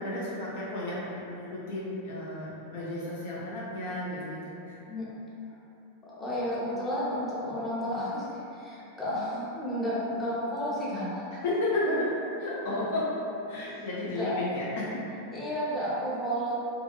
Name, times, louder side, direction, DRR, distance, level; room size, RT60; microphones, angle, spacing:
voice 1, 0.0-4.4 11.4-12.1 12.4-13.1 13.5-14.9, left 1 dB, 60° left, -7 dB, 0.5 m, -32 dB
voice 2, 6.1-11.4 13.5-14.4 15.3-16.5, equal, 15° left, -8 dB, 0.8 m, -32 dB
2.5 x 2.5 x 2.2 m, 2.9 s
figure-of-eight pair, 90°, 0 cm